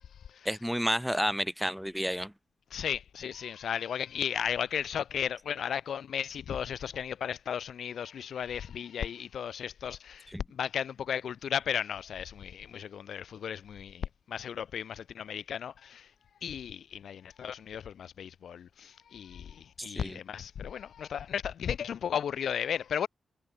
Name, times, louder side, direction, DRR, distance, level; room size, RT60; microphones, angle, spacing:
voice 1, 0.4-2.3 10.3-10.4 19.8-20.2, equal, ahead, 1.3 m, -31 dB
voice 2, 2.7-16.1 16.4-23.1, left 8 dB, 80° left, 6.3 m, -35 dB
wide cardioid pair, 175°, 0 cm